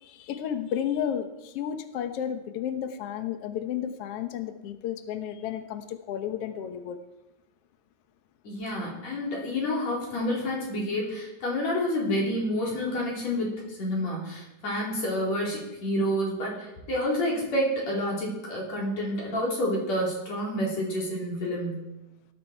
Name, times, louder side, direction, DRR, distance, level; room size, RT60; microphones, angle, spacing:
voice 1, 0.0-7.0, left 9 dB, 85° left, 8 dB, 1.3 m, -32 dB
voice 2, 8.4-21.9, equal, 50° left, -3 dB, 5.1 m, -29 dB
18.0 x 11.5 x 4.6 m, 0.96 s
omnidirectional pair, 4.1 m